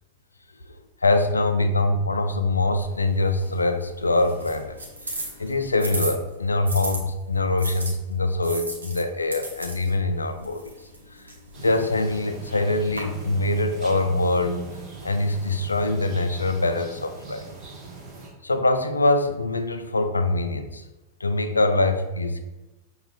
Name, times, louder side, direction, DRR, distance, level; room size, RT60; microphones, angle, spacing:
voice 1, 1.0-4.8 5.4-10.7 11.6-14.6 15.0-17.5 18.4-20.8 21.2-22.4, left 2 dB, 80° left, 8 dB, 0.3 m, -23 dB
sound 1, 2.8-7.0 7.6-13.0, right 2 dB, 75° right, 0.9 m, -37 dB
sound 2, 11.5-18.3, right 5 dB, 30° right, 1.3 m, -40 dB
6.2 x 2.3 x 2.5 m, 1.0 s
figure-of-eight pair, 90°, 0 cm